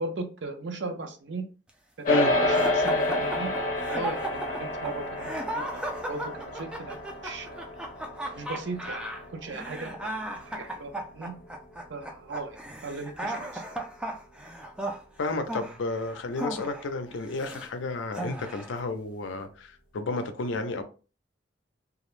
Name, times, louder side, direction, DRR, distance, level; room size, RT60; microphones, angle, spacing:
voice 1, 0.0-1.4 2.0-2.1 2.4-3.5 3.9-7.7 8.4-10.1 10.5-11.3 11.9-12.6 12.8-13.6, right 3 dB, 70° right, 0.6 m, -37 dB
sound 1, 2.0-11.6, left 1 dB, 45° left, 0.7 m, -30 dB
sound 2, 2.5-17.7 18.1-18.8, right 1 dB, 5° right, 0.3 m, -36 dB
voice 2, 15.2-20.8, left 3 dB, 85° left, 0.5 m, -31 dB
2.4 x 2.0 x 3.0 m
head